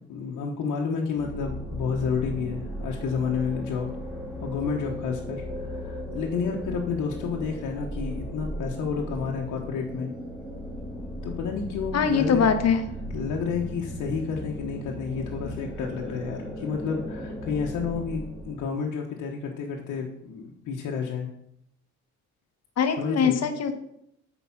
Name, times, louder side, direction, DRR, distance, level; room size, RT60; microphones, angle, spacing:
voice 1, 0.1-3.9 4.4-10.1 11.2-12.5 13.1-21.3 23.0-23.4, left 5 dB, 80° left, 0 dB, 1.2 m, -30 dB
sound 1, 1.2-18.6, equal, ahead, 2.8 m, -36 dB
voice 2, 11.9-12.8 22.8-23.7, left 6 dB, 55° left, 8 dB, 1.2 m, -22 dB
8.3 x 5.0 x 5.9 m, 0.75 s
cardioid pair, 90°, 30 cm